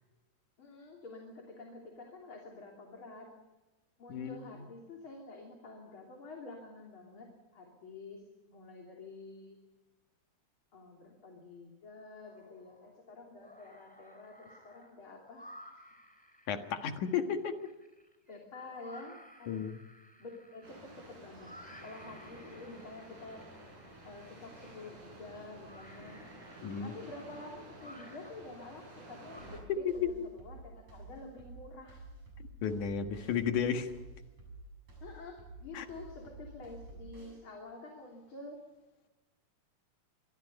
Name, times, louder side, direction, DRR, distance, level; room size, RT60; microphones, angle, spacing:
voice 1, 0.6-3.3 4.0-9.6 10.7-15.6 18.3-19.7 20.2-21.5 21.8-23.4 24.0-26.2 26.8-32.1 35.0-38.6, left 3 dB, 45° left, 1 dB, 3.7 m, -49 dB
voice 2, 4.1-4.5 16.5-17.6 19.5-19.8 26.6-26.9 29.7-30.1 32.6-33.9 35.7-35.9, left 7 dB, 80° left, 6 dB, 3.1 m, -33 dB
sound 1, 12.2-12.9 13.3-30.0, equal, ahead, 4.9 m, -57 dB
sound 2, 20.6-29.6, right 1 dB, 90° right, 9.0 m, -52 dB
sound 3, 29.4-37.4, right 2 dB, 60° right, 8.6 m, -50 dB
25.5 x 22.5 x 5.4 m, 1.1 s
omnidirectional pair, 3.5 m